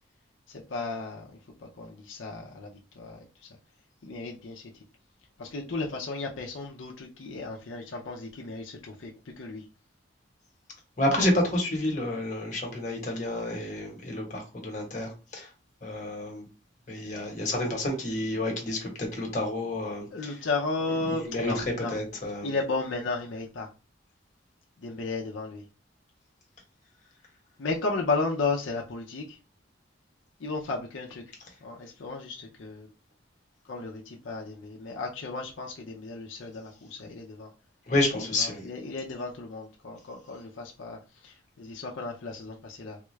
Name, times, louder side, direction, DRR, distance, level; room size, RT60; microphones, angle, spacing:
voice 1, 0.5-1.3 1.6-3.5 4.0-4.6 5.4-9.1 9.4-9.6 20.1-21.9 22.4-23.7 24.8-25.6 27.6-29.4 30.4-31.2 31.6-32.9 33.7-37.5 38.4-43.0, left 3 dB, 80° left, 0.6 m, -34 dB
voice 2, 11.0-15.5 15.8-16.4 16.9-20.4 21.1-21.6 21.9-22.6 37.9-38.7, left 1 dB, 40° left, 1.1 m, -29 dB
3.6 x 2.3 x 3.1 m
head